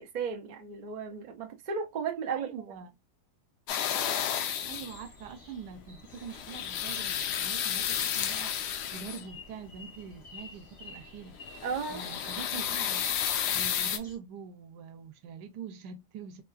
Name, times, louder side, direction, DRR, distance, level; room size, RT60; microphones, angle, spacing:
voice 1, 0.0-2.5 11.6-12.0, right 6 dB, 45° right, 0.6 m, -34 dB
voice 2, 2.3-2.9 4.7-11.4 11.9-13.1 13.5-16.4, right 6 dB, 90° right, 1.2 m, -44 dB
sound 1, 3.7-5.0 6.1-9.4 11.4-14.0, left 9 dB, 85° left, 1.2 m, -32 dB
sound 2, 4.6-14.2, left 1 dB, 35° left, 1.8 m, -52 dB
4.1 x 2.3 x 2.3 m
omnidirectional pair, 1.7 m